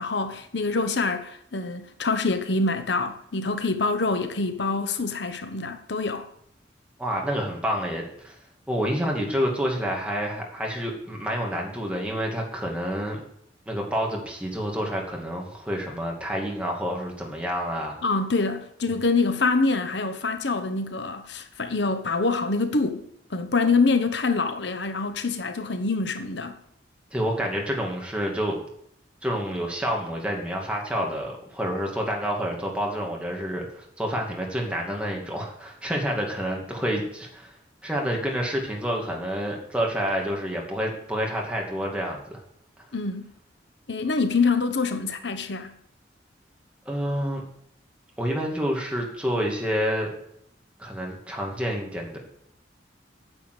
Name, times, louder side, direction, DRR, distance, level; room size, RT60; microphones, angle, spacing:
voice 1, 0.0-6.3 18.0-26.6 42.9-43.3 43.9-45.7, left 3 dB, 70° left, 1.0 m, -25 dB
voice 2, 7.0-8.4 8.7-13.2 13.7-18.0 27.1-28.6 29.2-37.5 37.8-42.4 46.9-47.4 48.2-50.1 50.8-52.2, equal, 5° right, 2.4 m, -28 dB
9.8 x 7.1 x 8.0 m
head